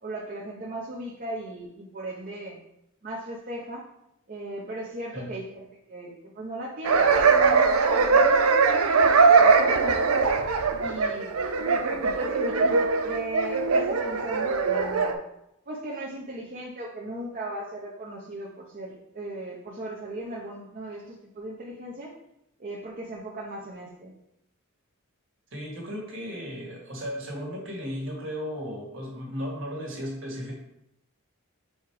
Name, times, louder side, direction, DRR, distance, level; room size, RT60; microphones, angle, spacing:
voice 1, 0.0-2.6 3.0-3.9 4.3-10.3 10.8-11.4 12.0-15.2 15.7-22.1 22.6-24.2, right 1 dB, 40° right, -3 dB, 0.8 m, -37 dB
sound 1, 6.8-15.1, right 4 dB, 90° right, 0.5 m, -21 dB
voice 2, 25.5-30.5, equal, 60° right, -1 dB, 1.7 m, -35 dB
4.6 x 4.4 x 4.8 m, 0.81 s
head